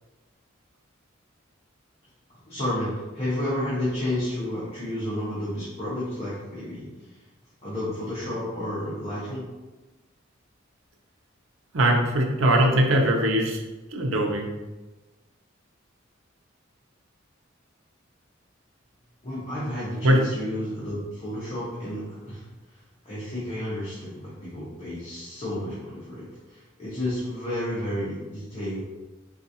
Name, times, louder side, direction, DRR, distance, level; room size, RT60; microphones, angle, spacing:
voice 1, 2.5-6.9 7.6-9.4 19.2-22.4 23.0-28.8, left 1 dB, 35° left, -9 dB, 0.9 m, -31 dB
voice 2, 11.7-13.6 13.9-14.5 20.0-20.2, right 1 dB, 90° right, 1 dB, 0.6 m, -21 dB
3.9 x 2.4 x 2.7 m, 1.1 s
head